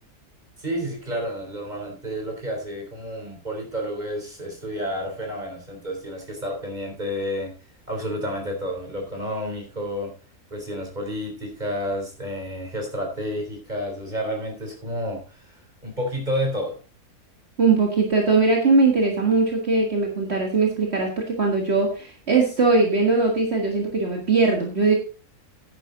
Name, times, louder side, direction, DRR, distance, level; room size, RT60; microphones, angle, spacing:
voice 1, 0.6-7.5 7.9-10.1 10.5-16.8, equal, 30° right, 2 dB, 3.9 m, -30 dB
voice 2, 17.6-24.9, right 3 dB, 45° right, 0 dB, 2.0 m, -20 dB
10.0 x 10.0 x 4.0 m, 0.35 s
omnidirectional pair, 1.6 m